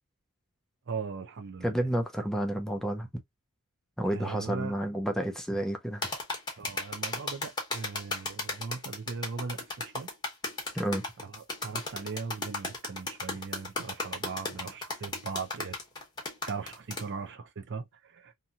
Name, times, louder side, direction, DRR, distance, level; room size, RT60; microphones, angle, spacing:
voice 1, 0.9-1.9 4.1-4.7 6.6-10.1 11.2-15.8 16.4-18.3, right 4 dB, 55° right, 0.5 m, -39 dB
voice 2, 1.6-3.1 4.0-6.1 10.7-11.0, right 1 dB, ahead, 0.4 m, -30 dB
sound 1, 6.0-17.1, left 3 dB, 20° left, 1.0 m, -35 dB
2.8 x 2.6 x 2.3 m
head